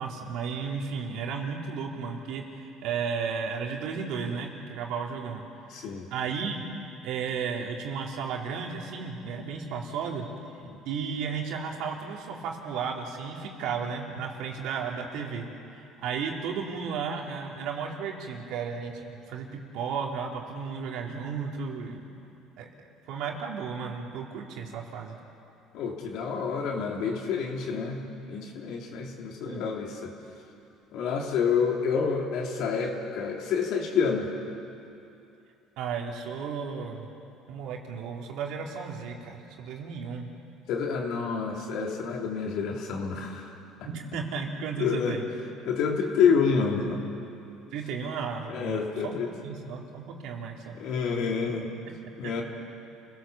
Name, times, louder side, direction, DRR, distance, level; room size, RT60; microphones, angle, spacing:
voice 1, 0.0-5.4 6.1-6.6 7.0-10.3 10.8-15.5 15.7-22.0 22.6-22.7 23.1-25.2 29.4-29.6 35.8-37.1 37.5-40.3 43.8-45.3 47.7-49.2 49.4-50.7 52.2-52.3, right 6 dB, 70° right, 0 dB, 3.3 m, -34 dB
voice 2, 5.7-6.0 25.7-30.1 30.9-34.3 40.7-43.5 44.8-45.2 45.6-47.0 48.5-49.3 50.7-51.6 52.2-52.4, left 6 dB, 70° left, 0 dB, 3.5 m, -28 dB
29.5 x 17.5 x 7.2 m, 2.7 s
supercardioid pair, 105°, 0 cm